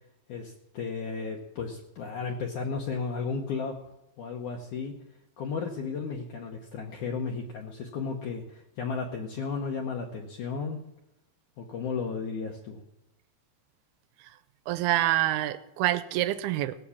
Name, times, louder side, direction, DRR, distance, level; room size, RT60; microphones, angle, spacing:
voice 1, 0.3-3.8 4.2-4.9 5.4-10.8 11.6-12.8, left 5 dB, 65° left, 1 dB, 2.1 m, -34 dB
voice 2, 14.7-16.8, right 14 dB, 85° right, 13 dB, 2.5 m, -26 dB
17.5 x 7.9 x 7.1 m, 0.88 s
omnidirectional pair, 4.5 m